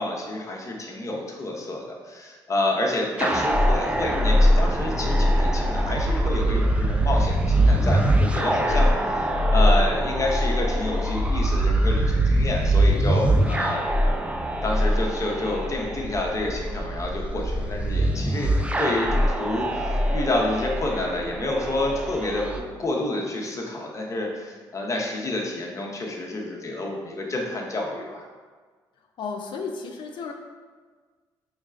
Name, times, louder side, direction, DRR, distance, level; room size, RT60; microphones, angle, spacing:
voice 1, 0.0-13.9 14.6-28.2, left 2 dB, 35° left, -1 dB, 0.8 m, -29 dB
sound 1, 3.2-22.6, equal, 15° right, 0.3 m, -22 dB
voice 2, 29.2-30.3, left 5 dB, 65° left, 2 dB, 0.4 m, -33 dB
4.4 x 3.2 x 2.4 m, 1.5 s
cardioid pair, 75°, 9 cm